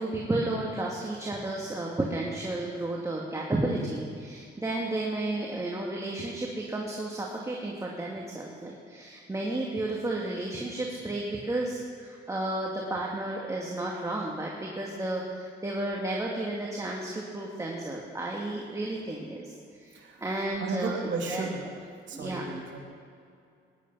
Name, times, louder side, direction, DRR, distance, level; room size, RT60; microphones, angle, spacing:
voice 1, 0.0-21.5 22.1-22.4, right 2 dB, 15° right, -2 dB, 2.2 m, -32 dB
voice 2, 20.6-21.6 22.1-22.8, right 4 dB, 70° right, -1 dB, 3.1 m, -34 dB
20.0 x 11.0 x 5.6 m, 2.4 s
cardioid pair, 90°, 20 cm